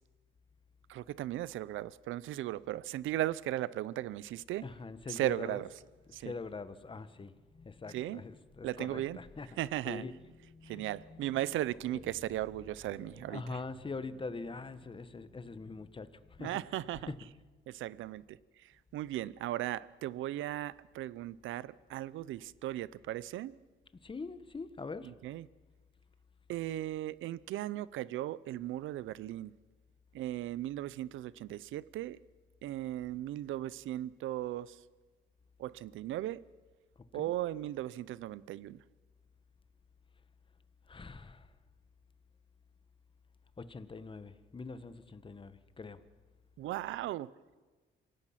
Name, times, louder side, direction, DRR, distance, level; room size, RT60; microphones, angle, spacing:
voice 1, 0.9-4.6 5.1-5.7 6.1-6.3 7.9-8.2 8.6-9.2 9.6-10.0 10.6-13.4 16.4-17.1 17.7-23.5 25.0-25.5 26.5-29.5 30.1-32.2 32.6-34.8 35.6-36.4 37.1-38.8 46.6-47.3, right 14 dB, 85° right, 0.6 m, -37 dB
voice 2, 4.6-5.6 6.1-9.6 9.8-10.1 10.4-11.4 11.9-12.0 12.9-16.5 17.1-17.2 23.9-25.1 37.0-37.3 40.9-41.5 43.6-46.0, left 4 dB, 25° left, 1.2 m, -44 dB
27.0 x 17.5 x 5.9 m
cardioid pair, 90°, 20 cm